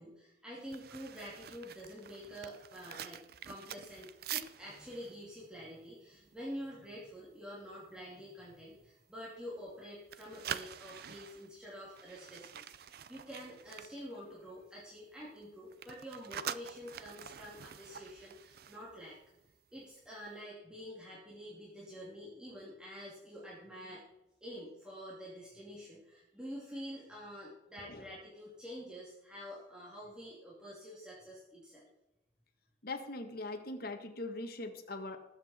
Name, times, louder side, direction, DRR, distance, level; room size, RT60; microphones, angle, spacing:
voice 1, 0.0-19.2 19.7-24.0 24.4-31.9, equal, 5° right, -7 dB, 2.6 m, -47 dB
sound 1, 0.6-6.8 7.1-7.3 7.7-8.0 8.5-9.8 10.0-14.8 15.0-19.6 19.8-20.1, right 9 dB, 55° right, 0.5 m, -46 dB
voice 2, 32.8-35.2, left 2 dB, 55° left, 6 dB, 1.6 m, -41 dB
19.0 x 7.8 x 4.3 m, 0.93 s
head